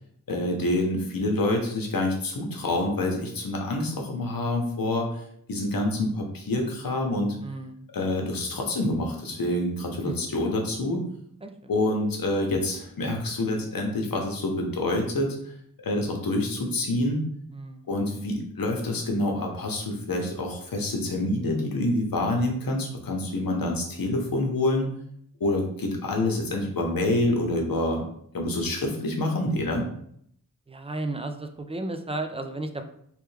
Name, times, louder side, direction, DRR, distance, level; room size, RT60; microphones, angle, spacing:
voice 1, 0.3-5.2 5.5-7.4 7.9-11.0 11.7-15.4 15.8-17.2 17.9-24.9 25.4-28.0 28.3-29.8, left 1 dB, 80° left, 2 dB, 0.9 m, -27 dB
voice 2, 7.4-7.9 10.1-10.2 11.4-11.7 17.5-17.9 30.7-32.8, right 2 dB, 15° right, 7 dB, 0.4 m, -34 dB
3.3 x 3.2 x 3.2 m, 0.68 s
wide cardioid pair, 70°, 34 cm